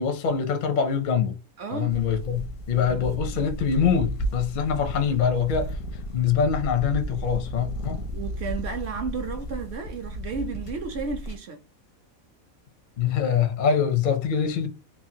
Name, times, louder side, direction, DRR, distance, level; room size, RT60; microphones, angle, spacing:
voice 1, 0.0-1.4 1.7-5.8 6.1-8.1 13.0-14.7, left 7 dB, 60° left, 0.5 m, -24 dB
voice 2, 1.6-1.9 8.1-11.6, right 5 dB, 60° right, 0.7 m, -33 dB
sound 1, 1.9-11.4, equal, 85° left, 1.1 m, -34 dB
3.1 x 2.3 x 2.6 m
omnidirectional pair, 1.5 m